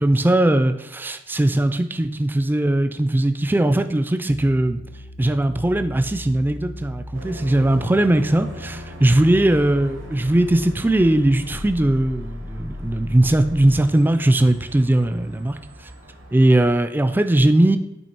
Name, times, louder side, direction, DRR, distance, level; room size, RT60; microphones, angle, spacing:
voice 1, 0.0-4.8 5.2-15.5 16.3-17.8, right 1 dB, 10° right, 9 dB, 0.3 m, -19 dB
sound 1, 4.3-13.9, left 1 dB, 75° left, 0.7 m, -37 dB
sound 2, 7.1-16.7, right 1 dB, 85° right, 1.1 m, -42 dB
8.3 x 3.1 x 4.3 m, 0.96 s
head